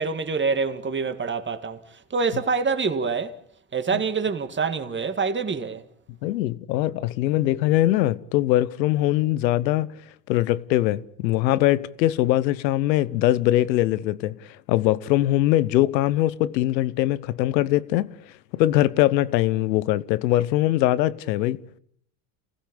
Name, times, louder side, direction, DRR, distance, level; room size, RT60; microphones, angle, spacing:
voice 1, 0.0-1.8 2.1-3.4 3.7-5.8, right 5 dB, 20° right, 2.0 m, -26 dB
voice 2, 6.2-9.9 10.3-18.1 18.5-21.6, left 15 dB, 85° left, 1.0 m, -22 dB
28.5 x 16.0 x 8.6 m
hypercardioid pair, 80°, 49 cm